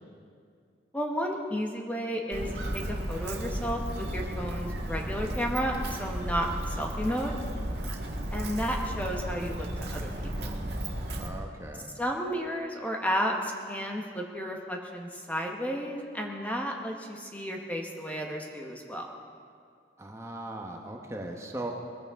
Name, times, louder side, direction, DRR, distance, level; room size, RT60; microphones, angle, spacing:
voice 1, 0.9-7.3 8.3-10.1 10.4-10.6 12.0-19.1, equal, 10° left, 1 dB, 1.1 m, -32 dB
Walk footsteps, 2.3-11.3, right 1 dB, 70° right, 1.7 m, -34 dB
voice 2, 11.1-11.9 20.0-21.7, right 1 dB, 15° right, 1 dB, 1.1 m, -38 dB
21.0 x 15.0 x 3.7 m, 2.2 s
head